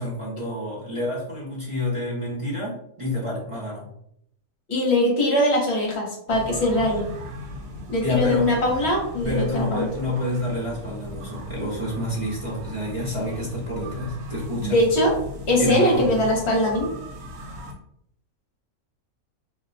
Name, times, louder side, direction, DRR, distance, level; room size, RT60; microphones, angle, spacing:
voice 1, 0.0-3.9 8.0-8.5 9.2-14.8 15.6-16.2, left 1 dB, 40° right, -6 dB, 0.5 m, -28 dB
voice 2, 4.7-7.0 7.9-9.9 14.6-15.2 15.5-16.9, left 1 dB, 50° left, -1 dB, 1.0 m, -21 dB
sound 1, 6.3-17.7, left 1 dB, 70° right, 1.0 m, -37 dB
2.6 x 2.1 x 3.8 m, 0.73 s
omnidirectional pair, 1.6 m